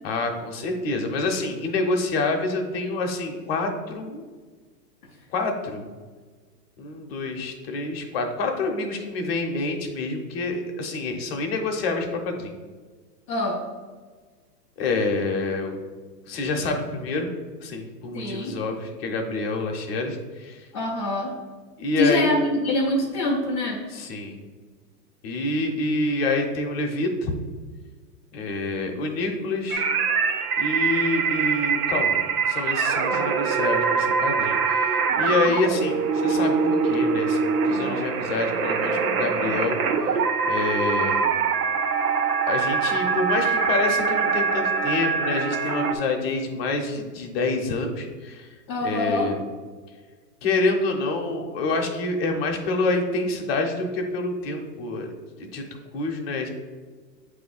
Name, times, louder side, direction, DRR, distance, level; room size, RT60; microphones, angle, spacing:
voice 1, 0.0-4.2 5.3-5.8 6.8-12.5 14.8-15.7 16.3-17.3 17.6-20.6 21.8-22.3 23.9-24.4 25.2-27.3 28.3-29.9 30.6-32.2 32.5-39.8 40.5-41.2 42.5-48.5 48.8-49.4 50.4-55.1 55.4-55.6 55.9-56.5, left 3 dB, 40° left, 2 dB, 0.9 m, -27 dB
voice 2, 13.3-13.6 18.1-18.6 20.7-21.3 22.0-23.8 33.1-33.3 48.7-49.3, left 1 dB, 20° left, -7 dB, 0.5 m, -24 dB
sound 1, 29.7-45.9, right 5 dB, 60° right, 0.7 m, -23 dB
8.0 x 2.9 x 4.1 m, 1.4 s
hypercardioid pair, 155°, 49 cm